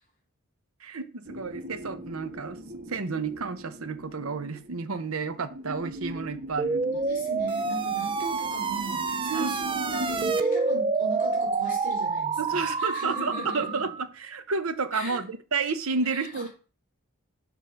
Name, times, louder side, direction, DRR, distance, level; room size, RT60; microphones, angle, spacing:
voice 1, 0.8-2.6 2.9-7.0 9.3-9.5 12.4-16.5, right 4 dB, 70° right, 0.8 m, -31 dB
sound 1, 1.2-10.3, right 1 dB, 40° right, 1.3 m, -40 dB
sound 2, 6.6-14.0, right 4 dB, 25° right, 0.4 m, -28 dB
voice 2, 6.9-13.9 14.9-15.2 16.0-16.5, equal, 40° left, 3.4 m, -39 dB
6.9 x 3.9 x 5.7 m
head